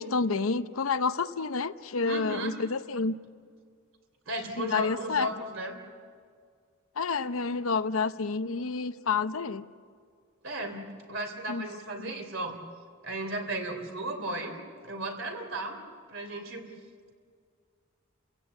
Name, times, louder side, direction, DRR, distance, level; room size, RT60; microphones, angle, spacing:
voice 1, 0.0-3.2 4.6-5.3 7.0-9.7 11.5-11.6 12.0-12.1, left 4 dB, 80° left, 12 dB, 0.7 m, -29 dB
voice 2, 2.0-2.6 4.3-5.8 10.4-12.6 13.0-14.6 14.8-15.8 16.1-16.7, right 1 dB, 65° right, 5 dB, 3.2 m, -35 dB
29.5 x 16.0 x 8.4 m, 2.1 s
head